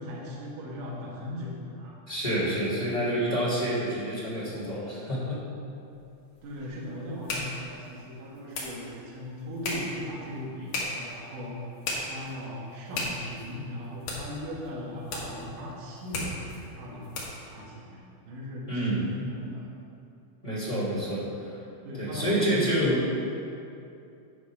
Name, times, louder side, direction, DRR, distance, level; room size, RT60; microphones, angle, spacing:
voice 1, 0.0-2.0 6.4-11.7 12.0-17.1 17.5-19.7 21.8-23.3, left 1 dB, 60° right, -5 dB, 2.7 m, -38 dB
voice 2, 2.1-5.4 18.7-19.1 19.4-19.5 20.4-21.6 22.0-23.0, right 1 dB, 25° left, -9 dB, 0.9 m, -28 dB
sound 1, 5.9-17.5, left 2 dB, 60° left, 2.7 m, -38 dB
9.5 x 6.0 x 5.7 m, 2.6 s
omnidirectional pair, 5.1 m